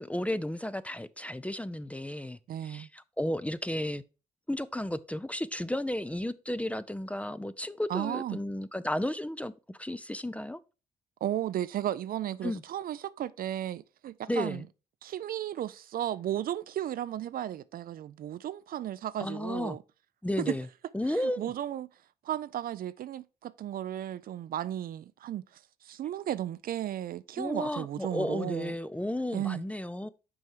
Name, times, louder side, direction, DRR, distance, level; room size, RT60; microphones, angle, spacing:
voice 1, 0.0-4.0 4.5-10.6 12.4-12.6 14.3-14.6 19.2-19.8 20.2-20.7 20.9-21.4 27.4-30.1, left 1 dB, 10° left, 0.5 m, -33 dB
voice 2, 2.5-2.9 7.9-8.4 11.2-14.7 15.0-19.8 20.5-20.6 21.1-21.9 22.2-25.4 25.8-28.8 29.3-29.6, right 11 dB, 60° right, 0.4 m, -34 dB
6.2 x 4.5 x 4.5 m
hypercardioid pair, 45°, 17 cm